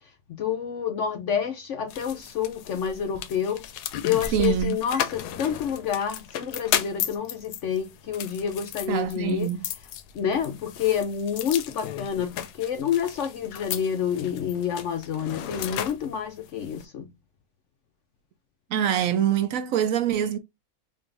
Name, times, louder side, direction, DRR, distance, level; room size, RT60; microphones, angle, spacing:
voice 1, 0.3-3.6 4.0-9.5 10.1-17.1, left 8 dB, 70° left, 0.7 m, -28 dB
sound 1, 1.9-16.8, left 9 dB, 85° left, 1.2 m, -35 dB
voice 2, 4.3-4.8 8.9-9.6 18.7-20.4, right 10 dB, 70° right, 0.9 m, -24 dB
5.2 x 2.6 x 2.6 m
omnidirectional pair, 1.7 m